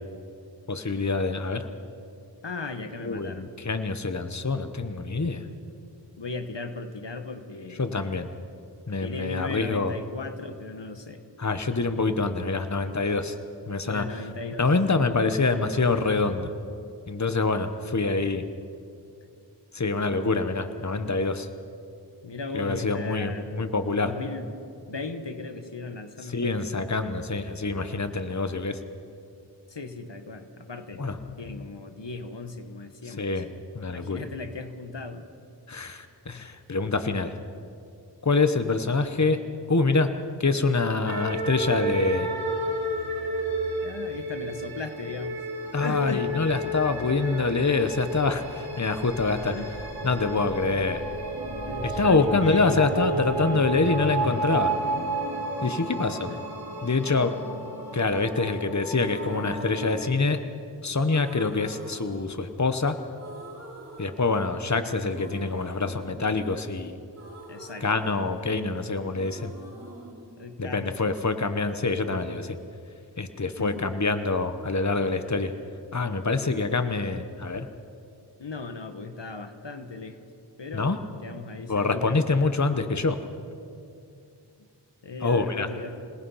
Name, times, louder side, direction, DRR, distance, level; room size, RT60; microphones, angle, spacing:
voice 1, 0.7-1.7 3.0-5.5 7.8-8.3 8.9-9.9 11.4-13.4 13.7-14.1 14.6-16.5 17.1-18.4 19.7-21.5 22.5-24.1 26.2-28.8 31.0-31.6 33.0-33.5 33.7-34.2 35.7-37.3 38.2-39.4 39.7-40.1 40.4-42.3 45.7-49.5 50.0-51.0 51.8-54.7 55.6-56.3 56.8-57.3 57.9-60.4 60.8-63.0 64.0-67.0 67.8-69.5 70.6-72.6 73.2-75.5 75.9-77.7 80.7-81.0 81.7-83.2 85.2-85.7, left 3 dB, 40° left, 9 dB, 1.1 m, -26 dB
voice 2, 2.4-3.4 6.1-7.8 9.0-11.2 13.8-14.7 22.2-23.7 24.0-24.5 24.9-26.6 29.7-31.0 31.4-33.3 33.8-35.3 43.8-45.4 45.7-46.2 49.3-49.7 51.7-52.8 53.5-53.6 56.3-56.4 67.5-67.9 70.4-70.9 73.6-73.8 78.4-80.3 80.6-82.2 85.0-85.9, left 3 dB, 85° left, 8 dB, 1.4 m, -37 dB
sound 1, 41.1-60.1, right 1 dB, 60° right, 3.4 m, -32 dB
sound 2, 59.0-60.7 61.1-62.9 63.1-64.7 65.1-68.8 69.1-71.1, right 1 dB, 35° right, 4.6 m, -45 dB
27.0 x 18.5 x 5.7 m, 2.5 s
wide cardioid pair, 40°, 42 cm